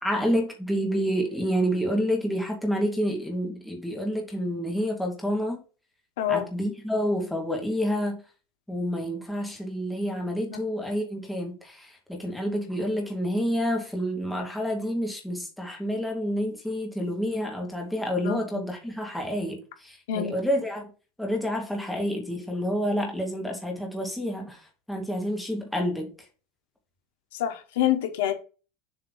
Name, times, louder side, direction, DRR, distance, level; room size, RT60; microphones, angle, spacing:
voice 1, 0.0-5.6 6.3-8.2 8.7-20.9 21.2-24.6 24.9-26.1, equal, ahead, 1.2 m, -28 dB
voice 2, 6.2-6.5 10.5-10.6 18.2-18.5 20.1-20.3 27.3-28.3, left 11 dB, 90° left, 1.2 m, -26 dB
7.0 x 2.8 x 5.3 m
supercardioid pair, 170°, 0 cm